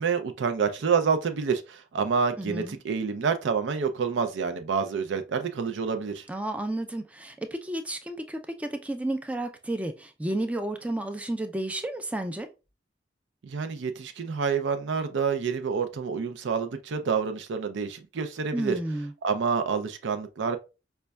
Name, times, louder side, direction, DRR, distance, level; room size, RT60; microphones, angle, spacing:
voice 1, 0.0-6.3 13.4-18.8 19.2-20.6, right 5 dB, 85° right, 0.4 m, -28 dB
voice 2, 2.4-2.8 6.3-12.5 18.5-19.1, right 1 dB, 10° right, 0.3 m, -32 dB
5.1 x 2.2 x 2.2 m
head